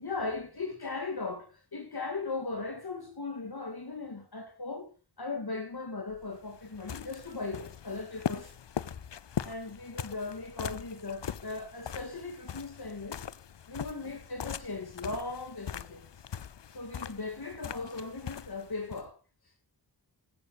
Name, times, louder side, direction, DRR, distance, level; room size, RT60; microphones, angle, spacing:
voice 1, 0.0-4.9 5.2-8.5 9.4-13.2 13.7-16.1 16.7-19.2, left 3 dB, 65° left, 2.1 m, -38 dB
sound 1, 6.1-19.1, left 8 dB, 90° left, 0.6 m, -41 dB
15.0 x 14.5 x 2.4 m
wide cardioid pair, 50°, 41 cm